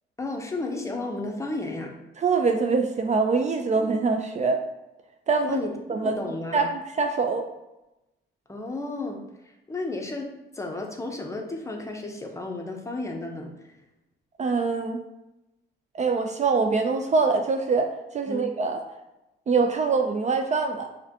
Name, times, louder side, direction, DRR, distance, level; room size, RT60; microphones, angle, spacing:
voice 1, 0.2-2.0 3.8-3.9 5.4-6.6 8.5-9.3 9.7-13.7 18.3-18.5, left 2 dB, 15° left, 2 dB, 0.6 m, -33 dB
voice 2, 2.2-4.6 5.3-5.6 5.9-6.2 6.5-7.4 14.4-15.0 15.9-18.8 19.5-20.9, right 4 dB, 35° right, 5 dB, 0.4 m, -24 dB
4.9 x 2.2 x 2.8 m, 0.96 s
cardioid pair, 90°, 20 cm